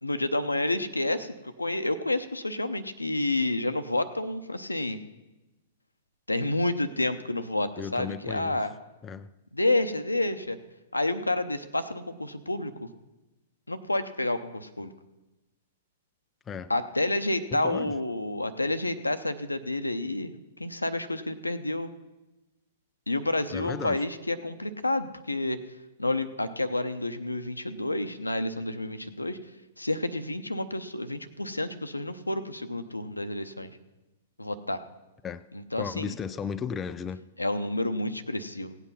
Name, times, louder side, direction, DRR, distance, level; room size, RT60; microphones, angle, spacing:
voice 1, 0.0-5.0 6.3-8.7 9.5-10.6 10.9-12.9 13.7-14.9 16.7-21.9 23.1-25.6 26.0-29.4 29.8-33.7 34.4-34.8 35.5-36.2 37.4-38.8, left 2 dB, 90° left, 10 dB, 0.7 m, -29 dB
voice 2, 7.8-8.6 9.0-9.3 16.5-16.7 17.5-17.9 23.5-24.0 35.2-35.5 35.8-37.2, left 6 dB, 20° left, 11 dB, 0.4 m, -35 dB
16.5 x 8.3 x 5.5 m, 1.0 s
figure-of-eight pair, 110°, 0 cm